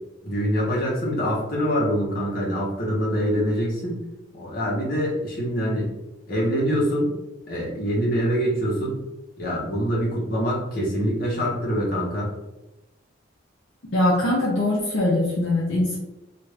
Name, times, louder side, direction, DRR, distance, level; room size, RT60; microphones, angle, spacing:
voice 1, 0.2-4.0 4.3-5.8 6.3-7.1 7.5-9.0 9.4-12.3, equal, 45° left, -5 dB, 1.0 m, -24 dB
voice 2, 13.9-16.0, left 1 dB, 60° left, -6 dB, 0.7 m, -22 dB
2.5 x 2.5 x 3.2 m, 1.0 s
head